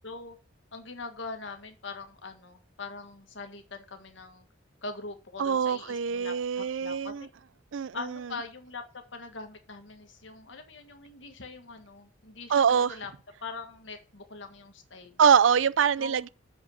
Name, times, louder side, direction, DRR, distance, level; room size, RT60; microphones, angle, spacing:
voice 1, 0.0-0.4 0.7-4.5 4.8-7.3 7.9-13.1 13.4-15.2 16.0-16.2, left 3 dB, 75° left, 1.8 m, -42 dB
voice 2, 5.4-7.3 7.7-8.3 12.5-13.0 15.2-16.3, right 7 dB, 90° right, 0.5 m, -24 dB
7.3 x 5.4 x 7.2 m
head